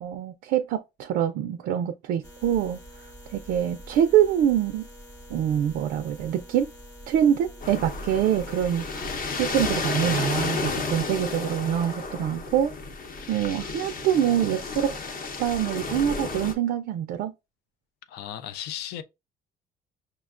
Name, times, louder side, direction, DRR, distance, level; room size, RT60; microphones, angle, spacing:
voice 1, 0.0-2.8 3.3-4.9 5.3-6.7 7.1-12.7 13.3-14.9 15.4-17.3, right 10 dB, 70° right, 0.4 m, -25 dB
sound 1, 2.2-9.2, equal, 20° left, 1.0 m, -46 dB
sound 2, 7.6-16.5, left 4 dB, 55° left, 0.8 m, -32 dB
voice 2, 18.1-19.0, left 11 dB, 75° left, 0.5 m, -35 dB
5.6 x 2.2 x 2.4 m
cardioid pair, 110°, 17 cm